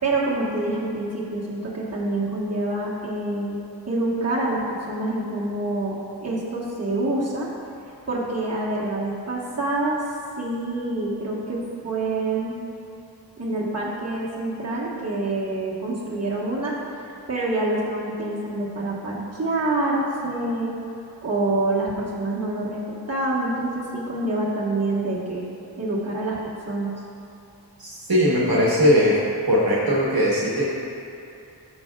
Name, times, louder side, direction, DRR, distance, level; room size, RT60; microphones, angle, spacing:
voice 1, 0.0-7.5 8.1-10.0 10.4-12.5 13.4-16.8 17.3-20.7 21.2-25.4 25.7-26.4 26.6-27.0, right 2 dB, 35° right, -6 dB, 1.4 m, -26 dB
voice 2, 27.8-29.1 29.5-30.7, equal, 60° right, -6 dB, 1.3 m, -19 dB
13.0 x 5.8 x 2.4 m, 2.7 s
wide cardioid pair, 65°, 42 cm